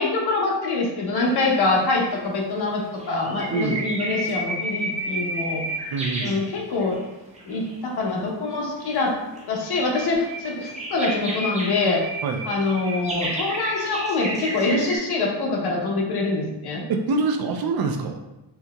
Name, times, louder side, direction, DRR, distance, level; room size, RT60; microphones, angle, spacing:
voice 1, 0.0-5.6 6.2-7.0 7.5-9.1 9.5-12.0 12.4-16.8, left 3 dB, 65° left, -1 dB, 0.9 m, -24 dB
sound 1, 1.2-2.2 2.8-7.0 7.3-7.9 8.8-15.0, right 1 dB, 15° right, 0.6 m, -32 dB
voice 2, 5.9-6.4 12.2-12.4 16.9-18.2, right 4 dB, 60° right, 4 dB, 0.5 m, -25 dB
4.3 x 2.7 x 2.3 m, 0.99 s
cardioid pair, 150°, 42 cm